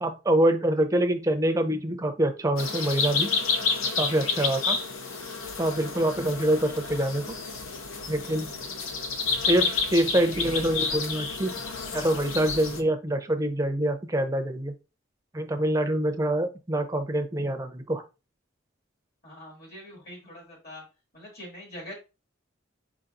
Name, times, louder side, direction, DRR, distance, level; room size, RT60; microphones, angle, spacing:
voice 1, 0.0-3.3 4.0-4.8 5.6-7.2 8.1-8.5 9.5-11.5 11.9-14.7 15.3-18.0, right 1 dB, 15° right, 6 dB, 0.6 m, -25 dB
sound 1, 2.6-12.8, left 4 dB, 80° left, 0.8 m, -30 dB
voice 2, 19.2-20.8 21.1-21.9, left 1 dB, 50° left, -1 dB, 2.0 m, -43 dB
5.0 x 4.0 x 2.5 m, 0.29 s
head